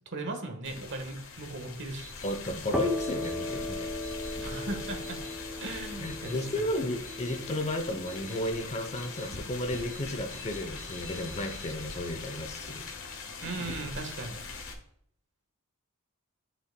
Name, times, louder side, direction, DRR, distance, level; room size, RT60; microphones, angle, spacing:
voice 1, 0.1-2.1 4.4-5.2 5.6-6.6 13.4-14.4, right 2 dB, 55° right, 4 dB, 1.3 m, -37 dB
sound 1, 0.6-14.7, left 4 dB, 65° left, 1.4 m, -42 dB
voice 2, 2.2-3.9 6.0-12.9, left 1 dB, 30° left, 6 dB, 0.7 m, -33 dB
sound 2, 2.2-2.3 3.0-3.3 4.0-4.3 5.0-5.3 6.0-6.3 7.0-7.4 8.0-8.4 9.0-9.3 9.7-10.0 10.3-11.7, right 2 dB, 35° right, 0.9 m, -50 dB
sound 3, 2.7-10.2, left 1 dB, 5° right, 0.6 m, -39 dB
11.0 x 5.8 x 2.2 m, 0.68 s
head